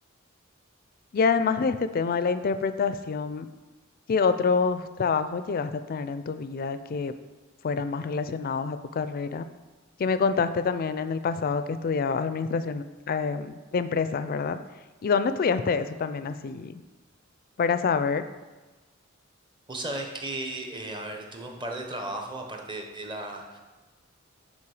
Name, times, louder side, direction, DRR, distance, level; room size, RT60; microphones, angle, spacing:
voice 1, 1.1-3.5 4.1-7.1 7.6-9.5 10.0-14.6 15.0-16.8 17.6-18.3, left 5 dB, 45° left, 11 dB, 0.4 m, -27 dB
voice 2, 19.7-23.6, right 2 dB, 25° right, 3 dB, 0.9 m, -35 dB
8.6 x 4.3 x 4.8 m, 1.2 s
head